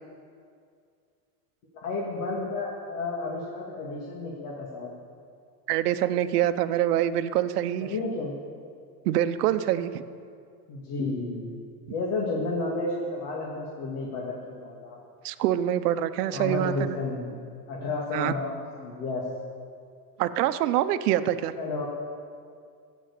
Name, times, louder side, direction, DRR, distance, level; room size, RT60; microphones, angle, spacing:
voice 1, 1.8-4.9 7.8-8.4 10.7-11.6 11.9-15.0 16.3-17.3 17.7-19.3 21.5-21.9, left 3 dB, 60° left, -3 dB, 2.5 m, -31 dB
voice 2, 5.7-7.9 9.0-9.9 15.2-17.0 18.1-18.3 20.2-21.5, right 12 dB, 85° right, 12 dB, 0.8 m, -25 dB
15.5 x 6.3 x 8.3 m, 2.3 s
supercardioid pair, 125°, 45 cm